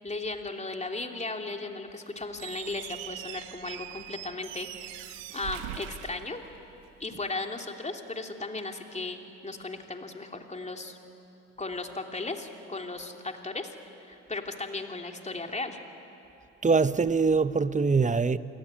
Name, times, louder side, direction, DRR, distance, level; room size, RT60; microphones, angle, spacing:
voice 1, 0.0-6.4 7.0-11.0 11.6-13.7 14.0-15.8, left 3 dB, 20° left, 3.1 m, -36 dB
Squeak, 2.3-7.0, right 13 dB, 80° right, 1.0 m, -42 dB
voice 2, 16.6-18.4, right 4 dB, 25° right, 1.0 m, -23 dB
28.0 x 18.0 x 10.0 m
hypercardioid pair, 55°, 32 cm